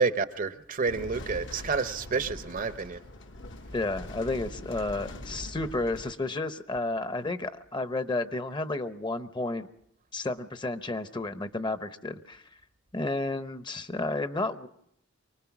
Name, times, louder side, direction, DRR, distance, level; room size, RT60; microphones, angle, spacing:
voice 1, 0.0-3.0, right 4 dB, 45° right, 0.8 m, -29 dB
sound 1, 0.8-6.1, left 1 dB, 65° left, 1.2 m, -42 dB
voice 2, 3.7-9.7 10.1-12.4 12.9-14.7, left 2 dB, 25° left, 0.8 m, -32 dB
24.5 x 20.0 x 6.0 m
head